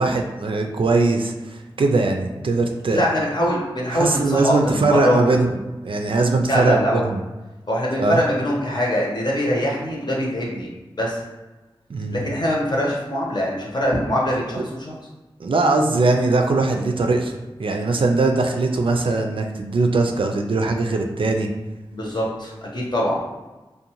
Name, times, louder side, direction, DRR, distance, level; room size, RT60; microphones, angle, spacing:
voice 1, 0.0-3.0 3.9-5.6 5.8-7.2 8.0-8.2 11.9-12.3 14.6-14.7 15.4-17.3 17.6-21.5, right 3 dB, 60° right, 3 dB, 0.3 m, -20 dB
voice 2, 2.9-5.4 6.5-7.1 7.7-10.7 11.0-11.2 12.1-14.9 21.9-23.2, equal, 45° left, -4 dB, 0.8 m, -23 dB
2.6 x 2.2 x 2.9 m, 1.1 s
cardioid pair, 45°, 10 cm